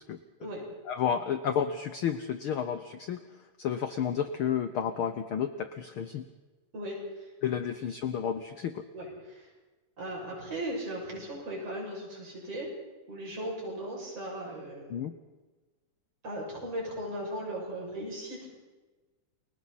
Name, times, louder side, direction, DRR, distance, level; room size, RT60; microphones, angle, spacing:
voice 1, 0.9-3.2 3.6-6.2 7.4-8.8 14.9-15.1, left 8 dB, 80° left, 9 dB, 1.1 m, -31 dB
voice 2, 6.7-7.3 8.9-9.5 10.0-12.7 13.1-15.0 16.2-18.5, right 1 dB, 50° right, -2 dB, 7.7 m, -37 dB
30.0 x 22.5 x 4.2 m, 1.2 s
omnidirectional pair, 3.6 m